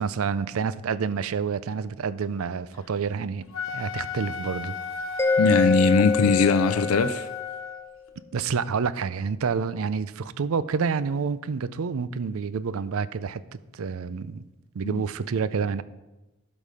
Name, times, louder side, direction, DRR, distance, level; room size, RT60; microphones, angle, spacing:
voice 1, 0.0-3.4 3.7-4.7 8.3-13.4 13.7-14.4 14.7-15.8, right 5 dB, 75° right, 16 dB, 0.4 m, -28 dB
Wind instrument woodwind instrument, 3.4-7.8, left 4 dB, 70° left, 1.1 m, -33 dB
Mallet percussion, 5.2-7.7, left 5 dB, 10° left, 0.4 m, -26 dB
voice 2, 5.4-7.3 14.8-15.0, left 4 dB, 90° left, 11 dB, 0.5 m, -20 dB
11.5 x 5.4 x 4.9 m, 1.0 s
head